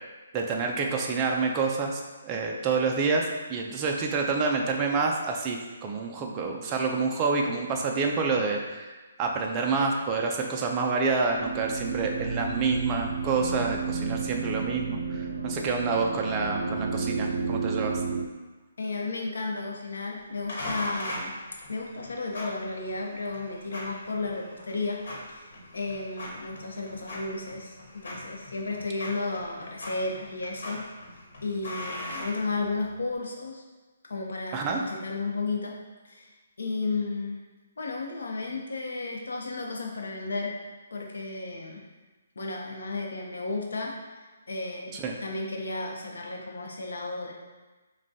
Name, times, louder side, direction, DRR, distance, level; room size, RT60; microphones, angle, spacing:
voice 1, 0.3-18.0 34.5-34.8 44.9-45.1, right 4 dB, 15° right, 0 dB, 0.4 m, -28 dB
sound 1, 11.0-18.3, right 4 dB, 85° right, 0.4 m, -31 dB
voice 2, 18.8-21.3 21.7-25.0 25.3-27.8 28.0-30.8 31.4-33.6 34.0-35.8 36.0-36.3 36.6-37.4 37.8-40.6 40.9-41.9 42.4-44.0 44.5-47.3, left 3 dB, 85° left, 0 dB, 0.8 m, -33 dB
sound 2, 20.5-33.0, left 1 dB, 55° left, 1.2 m, -40 dB
5.9 x 2.2 x 2.7 m, 1.2 s
hypercardioid pair, 170°, 0 cm